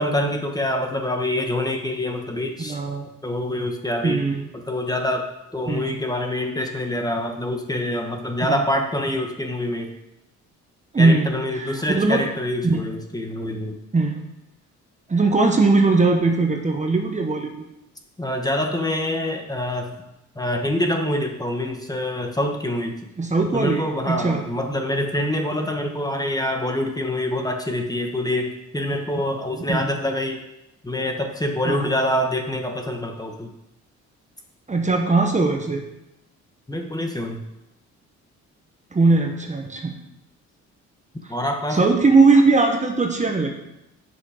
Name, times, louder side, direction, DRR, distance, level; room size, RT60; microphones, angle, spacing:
voice 1, 0.0-2.8 3.2-4.2 4.5-9.9 11.0-13.8 18.2-19.9 20.3-22.9 23.5-30.4 30.8-33.5 36.7-37.4 41.3-41.9, left 1 dB, 10° left, 3 dB, 1.3 m, -25 dB
voice 2, 2.6-3.1 4.0-4.5 5.7-6.0 8.5-8.6 10.9-12.2 12.6-12.8 13.9-14.2 15.1-17.6 23.2-24.4 29.2-29.3 29.5-29.9 31.6-31.9 34.7-35.8 38.9-39.9 41.7-43.6, right 3 dB, 25° right, 3 dB, 1.2 m, -20 dB
8.6 x 6.3 x 5.0 m, 0.89 s
cardioid pair, 90°, 30 cm